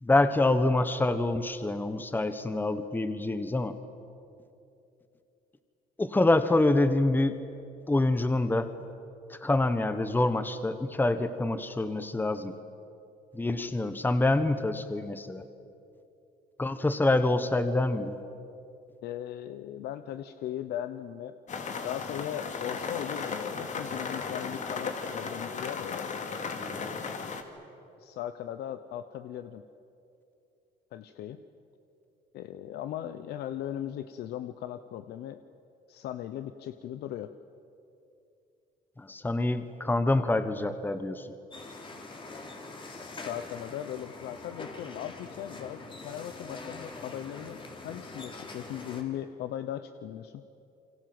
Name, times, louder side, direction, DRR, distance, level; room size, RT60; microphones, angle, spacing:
voice 1, 0.0-3.8 6.0-7.3 7.9-8.7 9.3-12.5 13.3-15.4 16.6-18.2 26.6-27.0 39.0-41.3, left 2 dB, 10° left, 10 dB, 1.3 m, -26 dB
voice 2, 19.0-21.4 21.8-26.1 28.0-29.6 30.9-31.4 32.3-35.4 35.9-37.3 42.9-50.4, left 11 dB, 75° left, 10 dB, 0.9 m, -38 dB
sound 1, 21.5-27.4, left 5 dB, 45° left, 2.7 m, -35 dB
sound 2, 41.5-49.0, left 3 dB, 30° left, 3.8 m, -44 dB
28.5 x 25.0 x 7.9 m, 2.7 s
cardioid pair, 110°, 17 cm